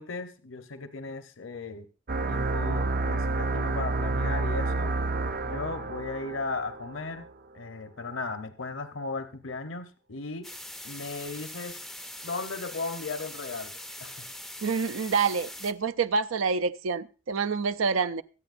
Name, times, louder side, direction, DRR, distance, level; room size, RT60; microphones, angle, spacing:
voice 1, 0.0-1.9 2.3-4.9 5.4-7.3 7.5-10.5 10.8-11.8 12.2-13.7 14.0-14.2, left 3 dB, 75° left, 1.0 m, -36 dB
sound 1, 2.1-7.3, right 3 dB, 45° right, 0.5 m, -29 dB
sound 2, 10.4-15.7, left 1 dB, ahead, 0.5 m, -42 dB
voice 2, 14.6-18.2, right 5 dB, 90° right, 0.5 m, -27 dB
24.0 x 8.8 x 2.6 m
head